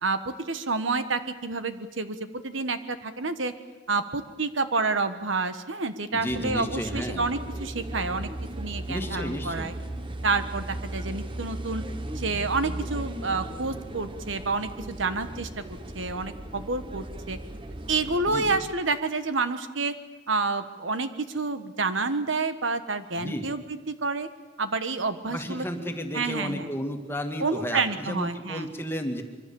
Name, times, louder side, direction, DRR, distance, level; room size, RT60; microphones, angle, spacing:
voice 1, 0.0-2.2 2.4-3.5 3.9-8.3 8.6-9.7 10.2-11.8 12.1-15.5 15.9-17.4 17.9-19.9 20.3-24.3 24.6-25.7 26.1-26.7 27.4-28.7, right 3 dB, 75° right, 10 dB, 1.4 m, -29 dB
voice 2, 6.1-7.3 8.9-9.8 18.3-18.6 23.1-23.5 25.3-29.2, equal, 10° left, 4 dB, 2.1 m, -33 dB
sound 1, 6.3-18.6, right 1 dB, 25° right, 1.2 m, -37 dB
25.5 x 24.0 x 7.1 m, 1.2 s
head